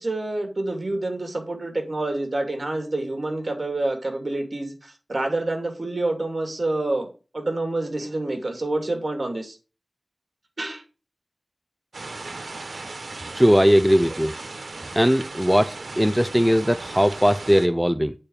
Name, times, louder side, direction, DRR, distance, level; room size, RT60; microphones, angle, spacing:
voice 1, 0.0-7.1 7.3-9.6 10.6-10.8 14.1-14.2, right 2 dB, 50° right, 2.6 m, -27 dB
sound 1, 11.9-17.7, right 3 dB, 90° right, 1.2 m, -37 dB
voice 2, 13.3-14.3 14.9-18.1, equal, ahead, 0.5 m, -19 dB
8.6 x 4.4 x 6.6 m
wide cardioid pair, 70°, 0 cm